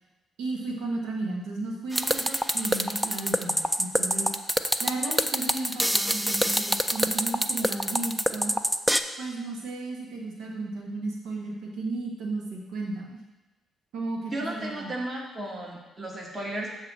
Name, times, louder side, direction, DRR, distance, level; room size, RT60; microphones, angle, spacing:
voice 1, 0.4-4.3 4.8-8.5 9.2-13.2 13.9-14.9, right 2 dB, 85° right, -1 dB, 1.1 m, -34 dB
sound 1, 1.9-9.0, equal, 5° right, 0.3 m, -25 dB
voice 2, 14.3-16.7, right 1 dB, 30° right, -1 dB, 1.5 m, -34 dB
7.5 x 2.9 x 5.9 m, 1.1 s
cardioid pair, 90°, 0 cm